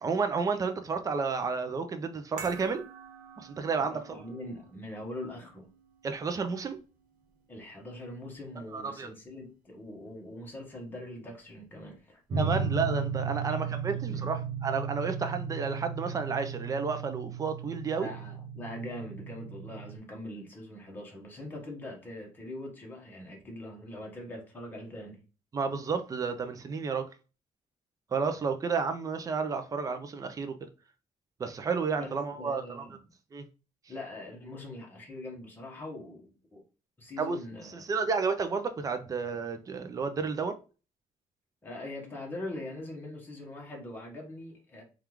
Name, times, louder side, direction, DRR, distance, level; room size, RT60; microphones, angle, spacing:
voice 1, 0.0-2.8 3.4-4.2 6.0-6.8 8.7-9.1 12.4-14.4 14.6-18.1 25.5-27.1 28.1-30.7 31.4-32.8 33.3-33.4 37.2-37.4 37.6-40.6, right 5 dB, 25° right, 0.4 m, -31 dB
sound 1, 2.4-8.8 9.1-9.2, right 6 dB, 80° right, 0.8 m, -50 dB
voice 2, 3.8-5.7 7.5-12.2 13.5-13.6 14.1-14.3 18.0-25.2 32.0-33.0 33.9-36.6 37.0-37.8 41.6-44.8, left 1 dB, 15° left, 1.0 m, -42 dB
sound 2, 12.3-20.0, right 5 dB, 40° right, 0.8 m, -35 dB
3.4 x 2.4 x 3.0 m
cardioid pair, 145°, 14 cm